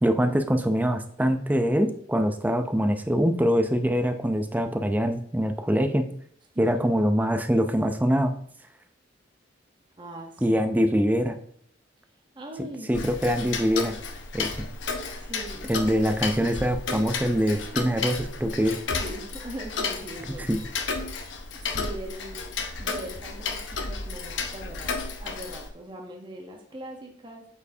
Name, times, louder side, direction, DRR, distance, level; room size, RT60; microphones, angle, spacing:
voice 1, 0.0-6.0 6.6-8.3 10.4-11.4 12.6-14.0 14.3-14.6 15.7-18.8 20.5-20.6, equal, 10° right, 7 dB, 0.5 m, -24 dB
voice 2, 6.5-6.9 10.0-10.6 12.3-12.9 15.1-16.1 19.0-20.5 21.6-24.9 25.2-27.5, right 1 dB, 25° right, 1 dB, 0.9 m, -41 dB
Tick-tock, 12.9-25.7, left 4 dB, 90° left, 0.8 m, -33 dB
8.2 x 4.6 x 2.7 m, 0.65 s
head